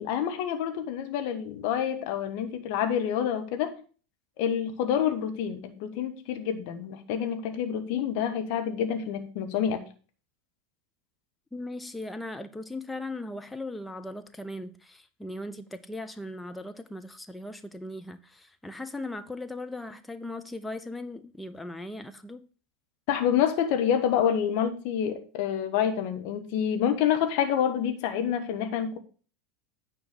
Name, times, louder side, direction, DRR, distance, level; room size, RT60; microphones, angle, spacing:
voice 1, 0.0-3.8 4.4-9.8 23.1-29.0, left 9 dB, 55° left, 1.5 m, -27 dB
voice 2, 11.5-22.5, left 2 dB, 10° left, 0.8 m, -38 dB
9.7 x 4.6 x 6.7 m
figure-of-eight pair, 80°, 0 cm